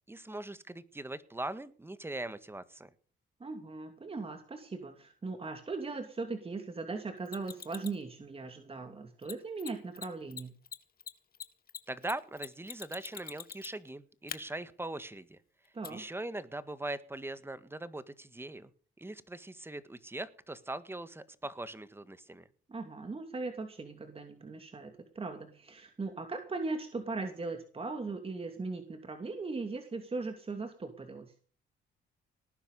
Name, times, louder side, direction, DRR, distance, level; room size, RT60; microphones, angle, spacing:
voice 1, 0.1-2.9 11.9-15.4 15.9-18.7 19.0-22.5, right 2 dB, 10° right, 13 dB, 1.7 m, -41 dB
voice 2, 3.4-10.5 15.7-16.0 22.7-31.3, right 3 dB, 30° right, 6 dB, 2.6 m, -39 dB
Mechanisms, 7.3-8.0 9.2-9.3 9.6-9.7 9.9-10.1 10.3-13.9 14.3-14.4 15.8-15.9, left 8 dB, 50° left, 1.5 m, -43 dB
19.0 x 10.5 x 5.5 m, 0.42 s
cardioid pair, 90°, 20 cm